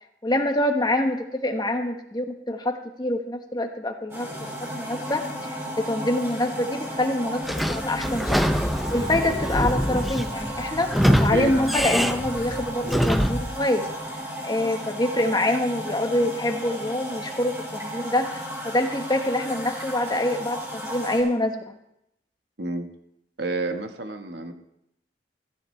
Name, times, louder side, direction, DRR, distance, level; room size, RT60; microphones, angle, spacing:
voice 1, 0.2-8.4 8.9-10.9 11.2-13.9 14.4-21.6, left 1 dB, 25° left, 4 dB, 1.3 m, -26 dB
sound 1, 4.1-21.2, equal, 15° right, 5.5 m, -34 dB
Sliding door / Squeak, 7.4-13.5, equal, ahead, 0.5 m, -24 dB
voice 2, 11.1-11.6 22.6-22.9 23.4-24.5, right 2 dB, 70° right, 5 dB, 1.5 m, -30 dB
15.5 x 15.5 x 3.3 m, 0.80 s
head